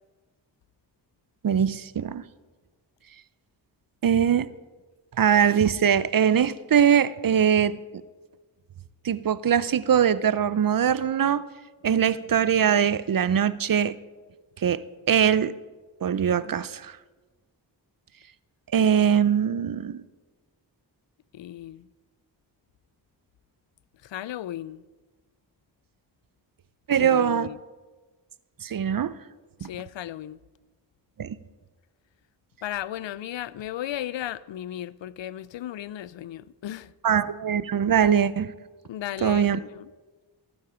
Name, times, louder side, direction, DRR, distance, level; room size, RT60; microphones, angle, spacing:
voice 1, 1.4-2.2 4.0-4.5 5.2-7.8 9.0-11.4 11.8-13.9 14.6-15.5 16.0-16.9 18.7-20.0 26.9-27.5 28.6-29.2 29.6-29.7 31.2-31.4 37.0-38.5 39.2-39.6, right 8 dB, 50° right, 0.6 m, -22 dB
voice 2, 21.3-21.9 24.0-24.8 26.9-27.6 29.6-30.4 32.6-36.9 38.9-39.9, left 12 dB, 80° left, 0.5 m, -35 dB
15.5 x 8.9 x 5.0 m
cardioid pair, 45°, 44 cm